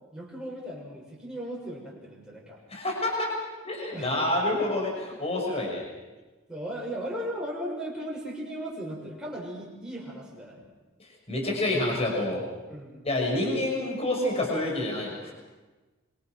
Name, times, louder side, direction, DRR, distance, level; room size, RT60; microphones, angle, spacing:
voice 1, 0.1-2.6 3.9-4.1 6.5-10.7 12.7-13.1, equal, 5° right, -4 dB, 7.0 m, -37 dB
voice 2, 2.7-3.3 3.6-5.8 11.0-12.4 13.0-15.3, left 1 dB, 30° left, -1 dB, 6.2 m, -28 dB
26.0 x 25.0 x 6.2 m, 1.2 s
head